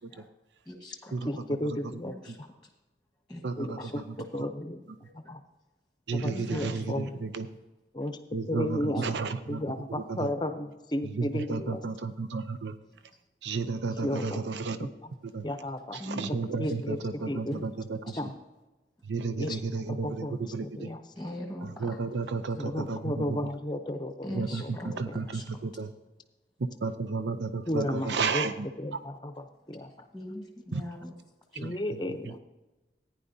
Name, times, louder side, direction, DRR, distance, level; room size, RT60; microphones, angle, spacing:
voice 1, 0.7-1.1 2.0-2.2 3.3-3.4 3.8-3.9 6.3-6.8 16.0-16.3 18.1-18.2 21.2-22.0 24.2-25.0 25.3-25.4 30.1-31.1, equal, 5° left, 0 dB, 1.3 m, -40 dB
voice 2, 1.2-2.5 3.6-4.8 5.1-5.4 6.1-7.2 7.9-8.2 8.5-11.8 13.9-14.4 14.8-15.1 15.4-16.0 16.3-17.7 18.0-18.3 19.4-21.4 22.6-25.2 27.7-28.5 28.8-30.1 31.6-32.4, left 1 dB, 25° left, 8 dB, 0.6 m, -34 dB
voice 3, 3.4-3.8 6.1-7.5 8.3-9.6 10.1-10.2 11.2-12.8 13.4-14.8 15.3-15.4 16.0-18.0 19.1-20.3 20.5-20.9 21.6-23.4 24.3-25.9 26.8-28.5 30.7-30.8 31.6-31.7, right 4 dB, 80° right, 11 dB, 0.5 m, -32 dB
15.0 x 9.9 x 2.7 m, 1.1 s
head